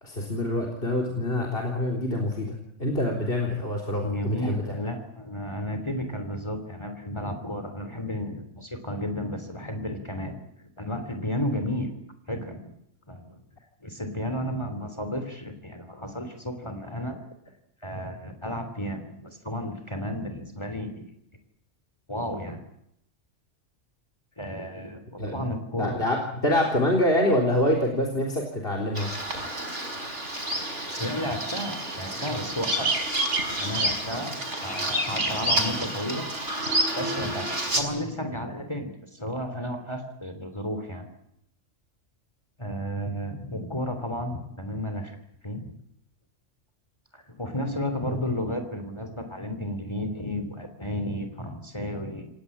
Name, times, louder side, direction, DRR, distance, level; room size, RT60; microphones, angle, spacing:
voice 1, 0.0-4.6 25.2-25.3 25.8-29.1 48.1-48.2, left 1 dB, 50° left, 0 dB, 4.1 m, -26 dB
voice 2, 4.0-10.4 10.8-11.9 12.3-12.8 13.1-13.4 13.8-17.2 17.8-21.1 22.1-22.6 24.4-26.0 31.0-32.9 33.5-36.3 36.9-41.1 42.6-45.2 45.4-45.6 47.1-52.3, equal, 25° left, 7 dB, 3.2 m, -33 dB
Bird vocalization bird call bird song, 28.9-37.8, right 1 dB, 75° right, 5.8 m, -29 dB
28.5 x 17.0 x 8.7 m, 0.77 s
omnidirectional pair, 1.2 m